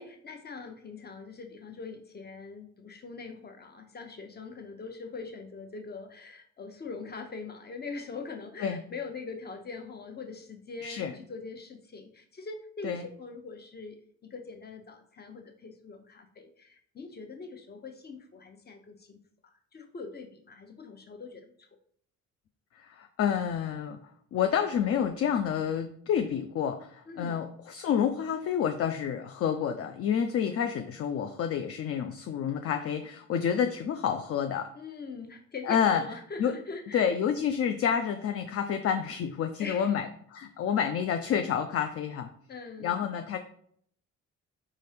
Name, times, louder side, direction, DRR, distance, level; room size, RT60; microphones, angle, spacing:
voice 1, 0.0-14.0 14.2-21.7 27.1-27.5 34.7-37.1 39.6-39.9 42.5-43.1, left 4 dB, 35° left, 5 dB, 0.8 m, -42 dB
voice 2, 22.8-24.0 24.3-34.7 35.7-36.0 36.4-36.5 36.9-42.3 42.8-43.4, left 8 dB, 50° left, 7 dB, 0.4 m, -29 dB
4.2 x 3.6 x 3.4 m, 0.63 s
cardioid pair, 90°, 30 cm